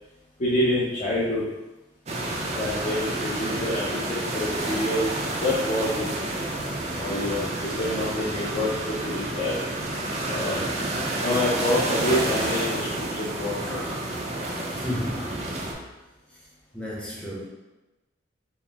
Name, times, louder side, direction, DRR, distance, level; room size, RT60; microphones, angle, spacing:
voice 1, 0.4-1.4 2.5-6.1 7.0-9.6 10.3-10.6 11.2-13.8, left 1 dB, 40° left, -9 dB, 0.6 m, -27 dB
sound 1, 2.1-15.7, right 1 dB, 35° right, 0.4 m, -29 dB
voice 2, 13.6-14.3 14.7-15.7 16.7-17.5, equal, 5° left, -5 dB, 0.7 m, -34 dB
4.3 x 2.0 x 3.4 m, 1.1 s
head